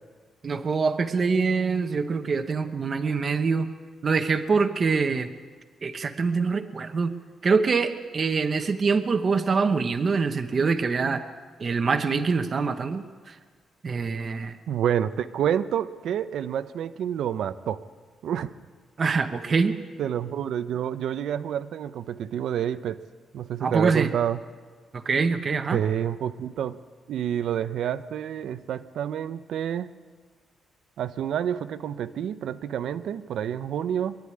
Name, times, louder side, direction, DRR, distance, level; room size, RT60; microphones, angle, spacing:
voice 1, 0.4-3.7 4.0-5.3 5.8-7.2 7.4-11.2 11.6-13.4 13.8-14.6 19.0-19.8 23.6-24.1 24.9-25.8, right 4 dB, 35° right, 7 dB, 1.0 m, -24 dB
voice 2, 14.7-17.8 18.2-18.5 20.0-23.0 23.3-24.4 25.7-26.8 27.1-29.9 31.0-34.2, right 9 dB, 70° right, 12 dB, 0.8 m, -28 dB
23.0 x 11.5 x 9.8 m, 1.5 s
cardioid pair, 160°, 0 cm